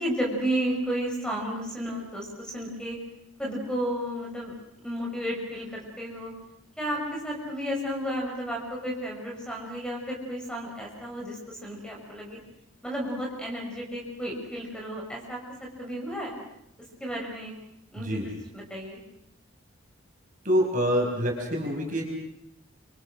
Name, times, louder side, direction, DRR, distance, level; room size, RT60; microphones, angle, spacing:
voice 1, 0.0-3.0 3.4-4.5 4.8-6.3 6.8-12.4 12.8-15.4 15.8-16.4 17.0-17.5 17.9-18.2 18.5-19.0, equal, 5° left, -1 dB, 6.5 m, -32 dB
voice 2, 18.0-18.3 20.4-22.1, equal, 40° right, 0 dB, 5.8 m, -26 dB
30.0 x 25.5 x 6.5 m, 0.78 s
head